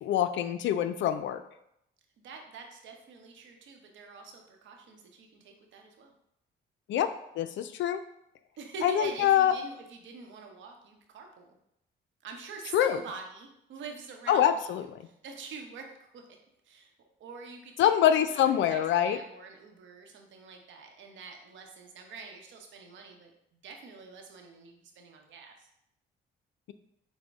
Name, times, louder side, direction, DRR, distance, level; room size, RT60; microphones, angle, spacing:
voice 1, 0.0-1.4 6.9-8.0 8.8-9.5 12.7-13.0 14.3-14.8 17.8-19.2, left 10 dB, 70° left, 10 dB, 0.4 m, -25 dB
voice 2, 2.2-6.1 8.6-11.5 12.2-16.2 16.6-16.9 17.2-25.7, right 4 dB, 70° right, 2 dB, 0.8 m, -45 dB
6.1 x 2.1 x 3.5 m, 0.77 s
cardioid pair, 90°, 20 cm